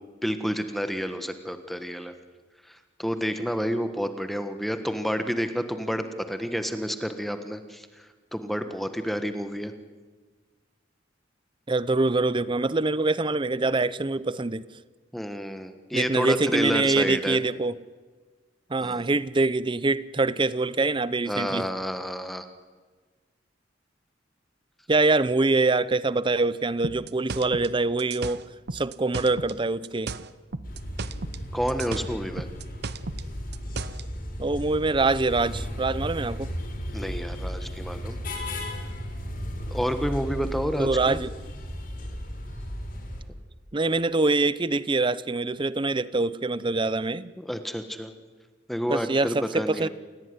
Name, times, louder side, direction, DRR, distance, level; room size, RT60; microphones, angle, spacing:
voice 1, 0.2-2.1 2.7-9.7 15.1-17.4 18.8-19.1 21.3-22.5 31.5-32.5 36.9-38.2 39.7-41.2 47.4-48.1 48.7-49.9, equal, ahead, 1.4 m, -30 dB
voice 2, 11.7-14.6 15.9-17.8 18.7-21.7 24.9-28.4 28.7-30.1 34.4-36.5 40.8-41.3 43.7-47.3 48.9-49.9, right 3 dB, 25° right, 0.7 m, -24 dB
sound 1, 26.8-29.6 29.8-31.4 31.7-34.1, right 3 dB, 60° right, 0.9 m, -35 dB
sound 2, 30.6-43.2, equal, 50° left, 5.6 m, -35 dB
28.5 x 17.0 x 9.7 m
head